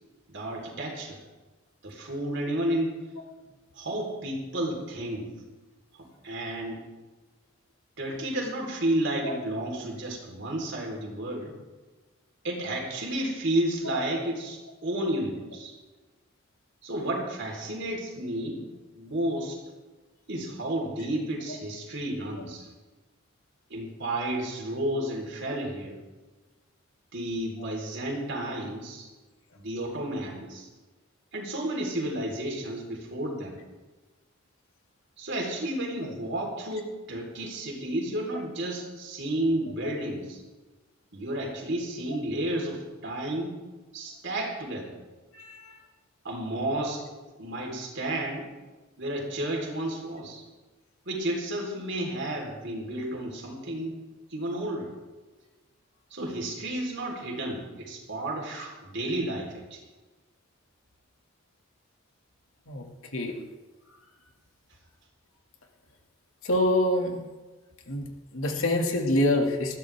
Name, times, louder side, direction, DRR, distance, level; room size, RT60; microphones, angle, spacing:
voice 1, 0.3-1.2 1.8-3.0 3.7-5.4 5.9-6.8 8.0-11.5 12.4-15.7 16.8-18.6 18.9-19.6 20.3-22.7 23.7-26.0 27.1-29.1 29.5-30.7 31.3-33.6 35.2-40.4 41.1-43.6 43.9-45.0 46.2-47.0 47.4-48.5 49.0-50.4 51.1-53.9 54.3-54.9 56.1-59.8, right 1 dB, 60° right, 0 dB, 4.1 m, -32 dB
voice 2, 66.4-67.2 67.9-68.0 68.3-69.8, left 1 dB, 80° left, 2 dB, 2.3 m, -25 dB
20.5 x 14.5 x 3.6 m, 1.2 s
head